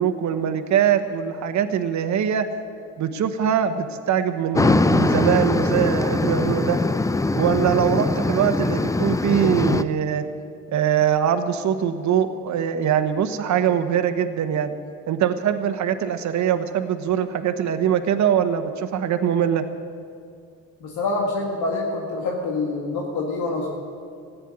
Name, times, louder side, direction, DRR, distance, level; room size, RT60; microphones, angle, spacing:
voice 1, 0.0-2.4 3.0-6.8 7.3-10.3 10.7-14.8 15.1-19.6, right 9 dB, 70° right, 8 dB, 1.1 m, -22 dB
sound 1, 4.6-9.8, left 2 dB, 10° left, 0.5 m, -21 dB
voice 2, 20.8-23.7, left 3 dB, 80° left, 0 dB, 1.8 m, -26 dB
14.5 x 9.4 x 9.6 m, 2.3 s
cardioid pair, 90°, 30 cm